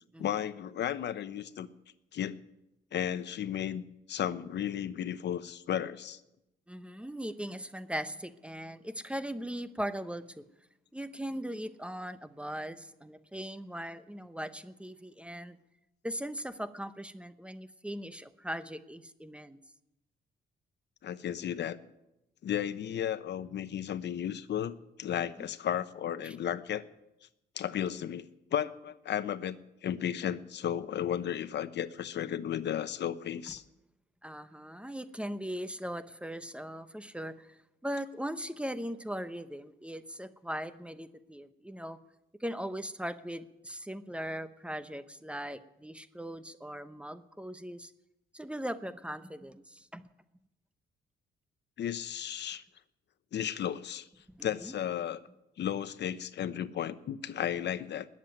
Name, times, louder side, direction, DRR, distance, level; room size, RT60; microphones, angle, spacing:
voice 1, 0.2-1.7 2.1-2.4 2.9-3.8 4.1-6.2 21.0-21.8 22.4-26.8 27.6-29.6 29.8-33.6 51.8-52.6 53.3-54.1 54.4-55.2 55.6-58.1, left 10 dB, 60° left, 13 dB, 0.8 m, -34 dB
voice 2, 6.7-10.3 10.9-15.6 16.0-19.6 26.2-26.3 34.2-37.6 37.8-42.0 42.4-47.9 48.3-50.1 54.3-54.7, equal, 5° right, 12 dB, 0.9 m, -39 dB
20.0 x 7.5 x 9.3 m, 0.90 s
cardioid pair, 90°, 20 cm